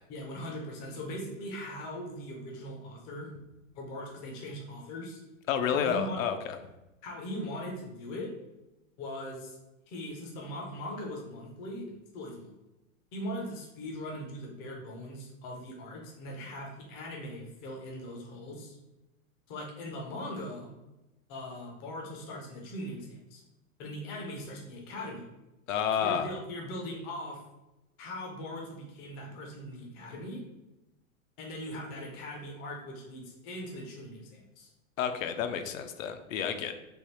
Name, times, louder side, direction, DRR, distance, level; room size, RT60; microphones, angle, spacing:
voice 1, 0.1-3.3 3.7-5.2 5.7-6.2 7.0-8.3 9.0-9.6 9.9-12.5 13.1-18.8 19.5-20.7 21.3-23.4 23.8-25.2 26.0-27.4 28.0-30.4 31.4-34.7, left 1 dB, 20° left, -1 dB, 0.4 m, -40 dB
voice 2, 5.5-6.6 25.7-26.3 35.0-36.7, left 8 dB, 70° left, 8 dB, 0.5 m, -30 dB
3.3 x 2.3 x 4.2 m, 0.96 s
supercardioid pair, 160°, 41 cm